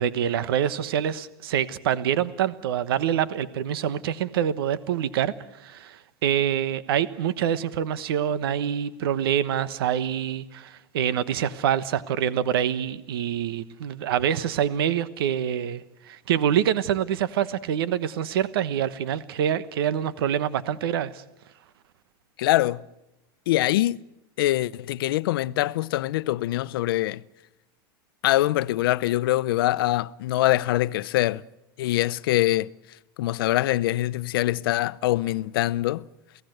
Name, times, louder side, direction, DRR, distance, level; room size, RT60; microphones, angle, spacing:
voice 1, 0.0-21.2, right 9 dB, 80° right, 1.2 m, -26 dB
voice 2, 22.4-22.8 23.5-24.0 24.4-27.2 28.2-31.4 31.8-32.7 33.2-36.1, left 15 dB, 75° left, 0.8 m, -24 dB
29.0 x 17.5 x 8.0 m
supercardioid pair, 150°, 12 cm